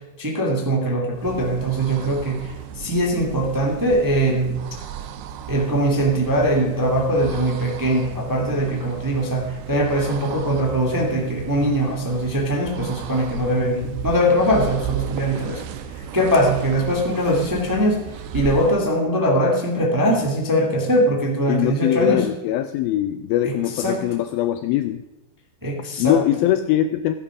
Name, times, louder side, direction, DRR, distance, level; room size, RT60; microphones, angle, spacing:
voice 1, 0.2-4.6 5.5-15.6 15.9-18.0 18.3-22.3 23.4-24.0 25.6-26.2, equal, 10° right, -1 dB, 1.3 m, -21 dB
sound 1, 1.1-18.9, right 8 dB, 85° right, 2.9 m, -35 dB
voice 2, 21.5-25.0 26.0-27.1, left 13 dB, 80° left, 10 dB, 2.2 m, -21 dB
15.5 x 11.0 x 4.9 m, 1.0 s
omnidirectional pair, 4.7 m